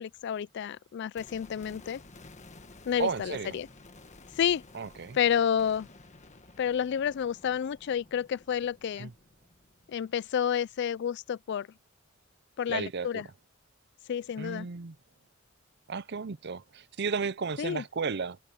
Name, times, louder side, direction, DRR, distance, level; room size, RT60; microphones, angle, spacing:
voice 1, 0.0-2.0 2.9-3.7 4.4-4.6 5.1-5.9 6.6-9.1 9.9-11.7 12.6-13.2 14.1-14.7 17.6-17.8, left 8 dB, 55° left, 0.3 m, -30 dB
sound 1, 1.2-11.2 11.5-11.6, left 2 dB, 35° left, 1.5 m, -54 dB
voice 2, 3.0-3.6 4.7-5.2 9.0-9.1 12.7-13.2 14.4-15.0 15.9-18.4, right 5 dB, 55° right, 0.6 m, -33 dB
head